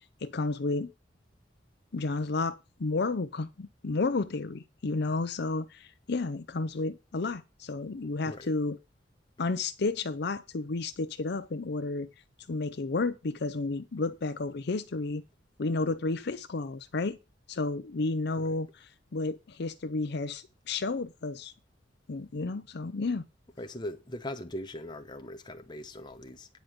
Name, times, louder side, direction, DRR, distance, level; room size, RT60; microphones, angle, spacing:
voice 1, 0.2-0.9 1.9-8.8 9.4-12.1 12.5-15.2 15.6-17.2 17.5-21.5 22.1-23.2, left 3 dB, 60° left, 0.6 m, -32 dB
voice 2, 23.6-26.5, left 1 dB, 25° left, 1.0 m, -40 dB
9.3 x 5.1 x 7.5 m
head